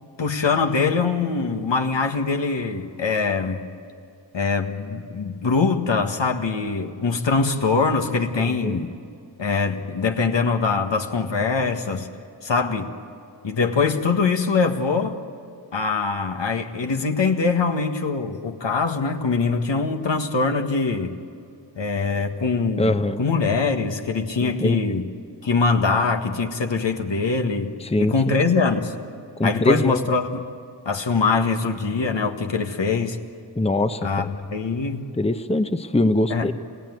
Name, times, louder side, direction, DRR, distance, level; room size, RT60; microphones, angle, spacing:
voice 1, 0.2-3.6 4.3-8.9 9.4-12.1 12.4-12.9 13.4-15.2 15.7-21.2 21.8-22.9 23.2-25.1 25.4-28.9 29.4-30.4 30.9-33.2 34.0-35.0 36.3-36.5, left 4 dB, 75° left, 5 dB, 1.7 m, -23 dB
voice 2, 8.4-8.9 22.8-23.2 24.4-24.9 27.8-28.3 29.4-30.0 33.6-34.3 35.2-36.5, left 2 dB, 15° left, 9 dB, 0.9 m, -23 dB
29.0 x 17.0 x 9.4 m, 2.5 s
wide cardioid pair, 65°, 44 cm